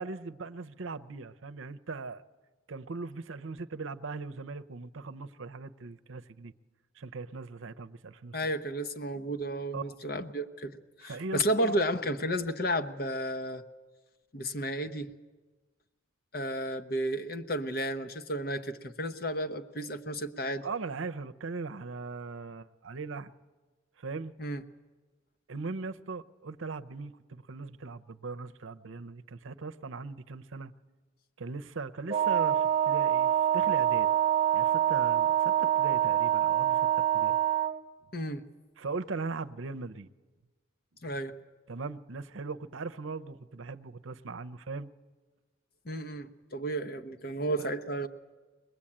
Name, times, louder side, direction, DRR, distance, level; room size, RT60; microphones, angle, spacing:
voice 1, 0.0-2.2 2.7-6.5 7.0-8.4 9.7-10.0 11.0-11.7 20.6-23.3 24.0-24.3 25.5-30.7 31.4-34.1 34.5-37.4 38.8-40.1 41.7-44.9 47.6-47.7, right 4 dB, 75° right, 11 dB, 0.7 m, -39 dB
voice 2, 8.3-13.6 14.3-15.1 16.3-20.7 24.4-24.6 38.1-38.4 41.0-41.3 45.8-48.1, equal, 50° left, 9 dB, 1.0 m, -32 dB
Wind instrument woodwind instrument, 32.1-37.8, right 11 dB, 30° right, 1.1 m, -25 dB
23.0 x 20.5 x 8.7 m, 1.3 s
head